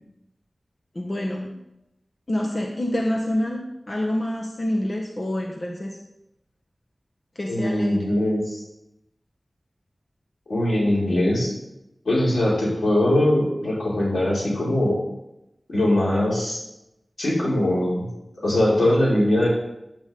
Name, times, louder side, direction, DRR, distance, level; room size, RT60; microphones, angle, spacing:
voice 1, 0.9-1.5 2.3-6.0 7.3-8.1, left 1 dB, 40° left, 0 dB, 1.4 m, -27 dB
voice 2, 7.5-8.6 10.5-11.5 12.1-15.0 15.7-16.6 17.2-18.1 18.4-19.5, left 1 dB, 85° left, -6 dB, 5.4 m, -21 dB
14.5 x 10.5 x 3.8 m, 0.88 s
wide cardioid pair, 70°, 0 cm